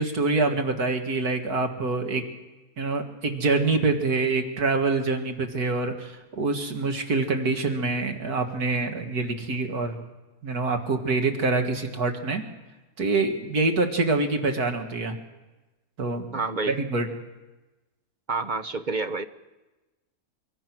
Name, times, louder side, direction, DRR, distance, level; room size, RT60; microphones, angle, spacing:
voice 1, 0.0-2.2 2.8-10.0 10.4-12.4 13.0-15.2 16.0-16.4 16.7-17.1, right 3 dB, 75° right, 4 dB, 2.5 m, -25 dB
voice 2, 16.3-16.7 18.3-19.2, right 3 dB, 35° right, 9 dB, 0.9 m, -28 dB
25.0 x 23.0 x 6.1 m, 1.1 s
omnidirectional pair, 1.6 m